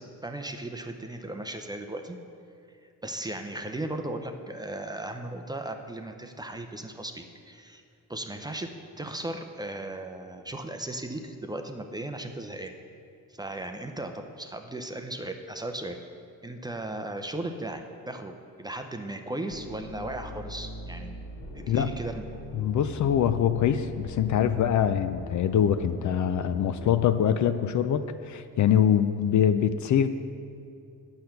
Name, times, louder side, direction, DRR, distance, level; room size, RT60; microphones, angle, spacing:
voice 1, 0.0-2.2 3.0-7.8 8.1-8.7 9.0-12.7 13.4-16.0 16.4-21.2 21.5-22.2, right 1 dB, 10° right, 5 dB, 0.5 m, -36 dB
sound 1, 19.5-26.9, left 1 dB, 85° left, 1.5 m, -41 dB
voice 2, 22.5-30.1, left 9 dB, 55° left, 11 dB, 0.5 m, -24 dB
8.7 x 7.8 x 5.7 m, 2.4 s
cardioid pair, 120°, 36 cm